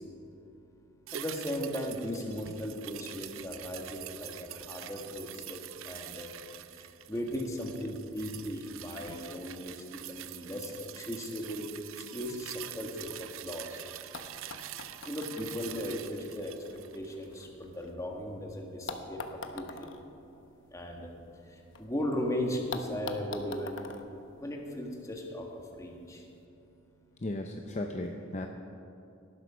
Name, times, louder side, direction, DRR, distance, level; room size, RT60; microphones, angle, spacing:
voice 1, 1.1-5.6 5.9-6.3 7.1-9.7 10.1-11.7 12.1-13.7 15.1-16.5 16.9-19.6 20.7-21.1 21.8-23.9 24.4-25.4 25.8-26.2, equal, 15° left, 1 dB, 1.7 m, -37 dB
sound 1, 1.1-17.6 17.9-18.0, right 12 dB, 75° right, 0.5 m, -45 dB
sound 2, 14.1-18.2 18.9-21.8 22.1-22.2 22.7-25.1 26.1-26.2, left 3 dB, 65° left, 1.1 m, -45 dB
voice 2, 27.2-28.5, left 1 dB, 35° left, 4 dB, 0.7 m, -35 dB
18.0 x 11.5 x 5.1 m, 2.8 s
head